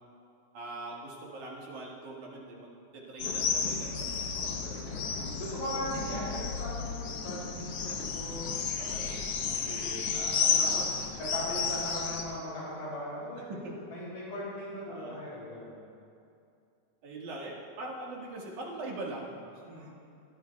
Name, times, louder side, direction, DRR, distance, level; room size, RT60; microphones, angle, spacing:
voice 1, 0.5-4.2 5.5-5.9 10.4-10.9 13.6-13.7 14.9-15.2 17.0-19.9, right 2 dB, 60° right, -3 dB, 3.0 m, -42 dB
sluggish motorcycles donkey and swifts marrakesh, 3.2-12.2, left 5 dB, 90° left, 1.3 m, -32 dB
voice 2, 4.3-5.1 5.4-10.9 11.2-13.6 13.9-15.8 19.6-19.8, left 1 dB, 60° left, -7 dB, 4.5 m, -39 dB
21.0 x 13.5 x 2.3 m, 2.5 s
omnidirectional pair, 4.1 m